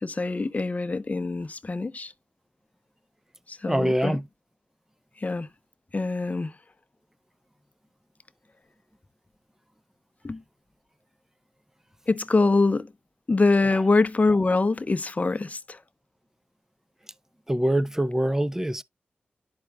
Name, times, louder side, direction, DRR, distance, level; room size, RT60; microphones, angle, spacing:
voice 1, 0.0-2.1 3.5-4.2 5.2-5.5 5.9-6.6 10.2-10.4 12.1-12.9 13.3-15.8, left 3 dB, 40° left, 0.8 m, -24 dB
voice 2, 3.7-4.2 17.5-18.8, right 1 dB, 10° right, 0.6 m, -24 dB
11.5 x 4.6 x 2.3 m
cardioid pair, 45°, 4 cm